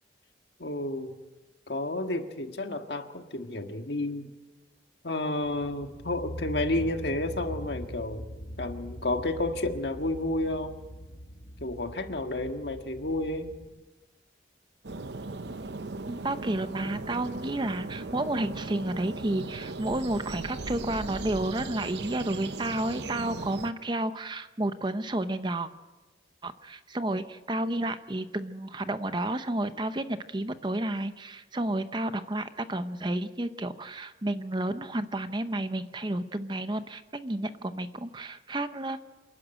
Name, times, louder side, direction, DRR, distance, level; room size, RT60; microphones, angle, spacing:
voice 1, 0.6-1.2 1.7-4.3 5.0-8.2 8.6-10.8 11.6-13.5, left 2 dB, 65° left, 5 dB, 1.7 m, -31 dB
sound 1, 5.4-13.6, equal, 85° left, 5.3 m, -42 dB
sound 2, 14.8-23.7, right 3 dB, 65° right, 0.8 m, -38 dB
voice 2, 16.0-25.7 26.4-39.0, right 1 dB, 25° right, 10 dB, 0.8 m, -31 dB
27.5 x 11.5 x 8.9 m, 1.2 s
head